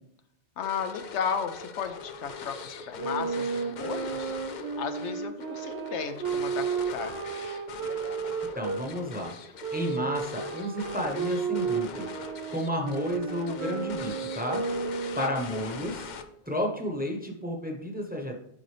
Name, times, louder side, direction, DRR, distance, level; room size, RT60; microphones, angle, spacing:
voice 1, 0.6-7.2 15.2-15.4, left 7 dB, 80° left, 8 dB, 1.0 m, -34 dB
sound 1, 0.6-16.6, left 5 dB, 55° left, 0.6 m, -41 dB
Wind instrument woodwind instrument, 2.9-8.8 9.6-15.4, right 6 dB, 70° right, 1.0 m, -33 dB
voice 2, 8.5-9.3 9.7-12.1 12.5-14.6 15.2-16.1 16.5-18.4, equal, 10° right, 1 dB, 1.0 m, -32 dB
11.0 x 3.9 x 3.3 m, 0.74 s
omnidirectional pair, 1.2 m